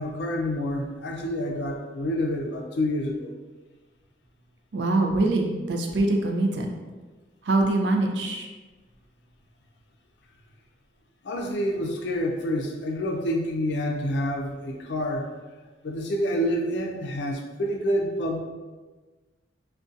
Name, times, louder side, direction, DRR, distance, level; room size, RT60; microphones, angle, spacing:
voice 1, 0.0-3.3 11.2-15.3 15.8-18.4, equal, 70° left, 1 dB, 0.4 m, -28 dB
voice 2, 4.7-6.7 7.4-8.5, right 2 dB, 70° right, 2 dB, 0.4 m, -24 dB
2.5 x 2.2 x 2.4 m, 1.3 s
head